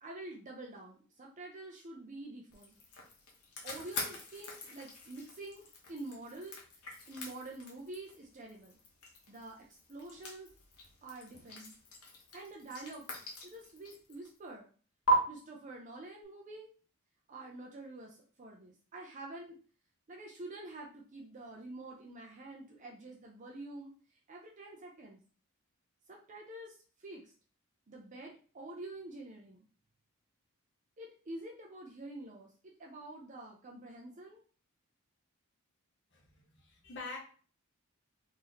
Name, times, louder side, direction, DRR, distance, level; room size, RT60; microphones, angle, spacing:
voice 1, 0.0-2.7 3.6-6.6 7.1-8.8 9.3-10.5 11.0-11.7 12.3-13.1 13.4-14.7 15.3-16.7 17.3-19.6 20.1-23.9 24.3-25.2 26.1-27.3 27.9-29.6 31.0-34.4, right 2 dB, 35° right, 0 dB, 0.5 m, -47 dB
sound 1, 2.5-14.4 15.1-15.2, equal, 90° left, 1.0 m, -41 dB
voice 2, 36.5-37.2, left 3 dB, 55° left, 0 dB, 1.0 m, -44 dB
3.1 x 2.6 x 3.9 m, 0.40 s
head